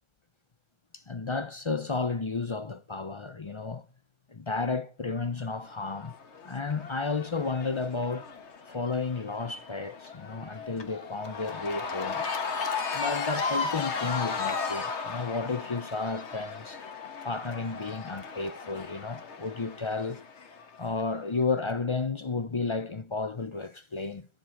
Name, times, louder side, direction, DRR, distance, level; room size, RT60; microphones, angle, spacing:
voice 1, 0.9-3.8 4.3-6.1 6.5-8.2 8.7-12.2 12.9-16.8 17.2-20.2 20.8-24.3, left 4 dB, 40° left, 0.4 m, -32 dB
Cheering / Crowd, 5.7-21.0, left 5 dB, 55° left, 1.6 m, -36 dB
14.5 x 7.8 x 7.0 m
omnidirectional pair, 1.4 m